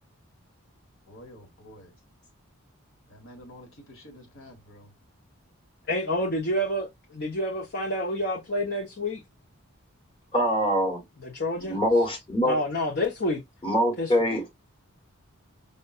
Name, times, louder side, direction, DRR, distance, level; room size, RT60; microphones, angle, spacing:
voice 1, 1.1-1.9 3.1-4.9, equal, 65° left, 1.5 m, -49 dB
voice 2, 5.9-9.2 11.2-11.8 12.4-13.4 14.0-14.1, left 1 dB, 50° left, 1.0 m, -28 dB
voice 3, 10.3-11.0 11.7-12.6 13.6-14.5, equal, 25° left, 1.3 m, -23 dB
5.5 x 2.5 x 2.4 m
head